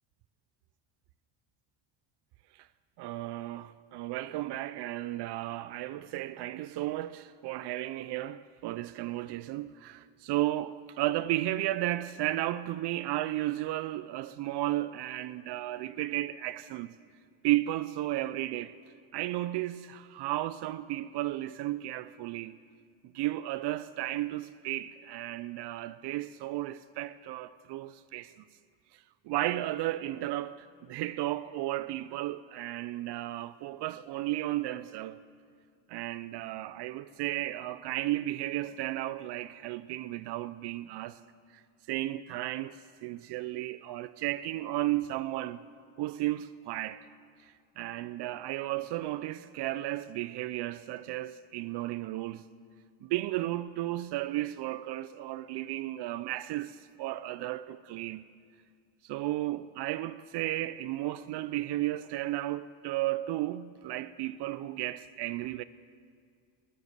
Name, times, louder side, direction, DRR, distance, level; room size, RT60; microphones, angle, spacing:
voice 1, 3.0-16.9 17.4-18.7 19.1-22.6 23.1-28.3 28.9-29.0 29.2-35.2 35.9-41.2 41.9-45.6 46.0-47.1 47.4-52.5 53.0-58.3 59.0-65.6, right 15 dB, 65° right, 0.5 m, -34 dB
20.5 x 7.2 x 8.1 m
cardioid pair, 100°, 45 cm